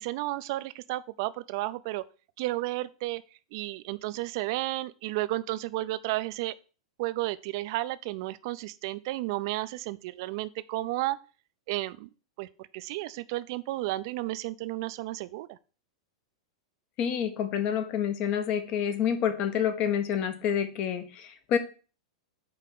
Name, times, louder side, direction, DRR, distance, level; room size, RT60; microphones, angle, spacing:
voice 1, 0.0-2.0 2.4-3.2 3.5-6.5 7.0-11.2 11.7-12.1 12.4-15.6, right 18 dB, 50° right, 0.5 m, -32 dB
voice 2, 17.0-21.6, left 8 dB, 40° left, 1.1 m, -28 dB
8.6 x 3.3 x 6.4 m
figure-of-eight pair, 95°, 3 cm